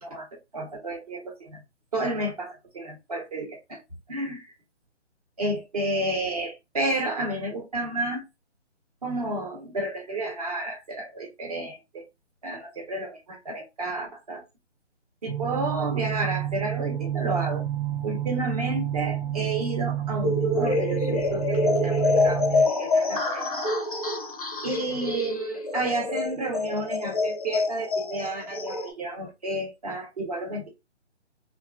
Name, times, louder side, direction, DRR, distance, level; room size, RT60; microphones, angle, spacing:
voice 1, 0.5-1.6 1.9-3.8 4.1-4.4 5.4-8.2 9.0-12.0 12.4-14.4 15.2-17.6 18.0-22.5 22.8-23.5 24.6-30.7, right 2 dB, 30° right, 1.0 m, -31 dB
sound 1, 15.3-22.6, right 12 dB, 50° right, 0.4 m, -29 dB
sound 2, 20.2-28.9, left 3 dB, 30° left, 0.5 m, -26 dB
4.1 x 2.5 x 2.4 m
hypercardioid pair, 165°, 36 cm